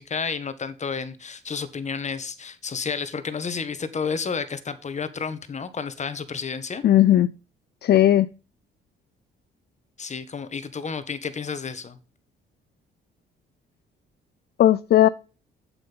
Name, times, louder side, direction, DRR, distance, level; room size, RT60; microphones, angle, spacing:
voice 1, 0.0-6.8 10.0-12.0, left 5 dB, 35° left, 1.4 m, -31 dB
voice 2, 6.8-7.3 7.8-8.3 14.6-15.1, left 12 dB, 55° left, 0.5 m, -16 dB
8.1 x 7.7 x 5.6 m
cardioid pair, 90°, 20 cm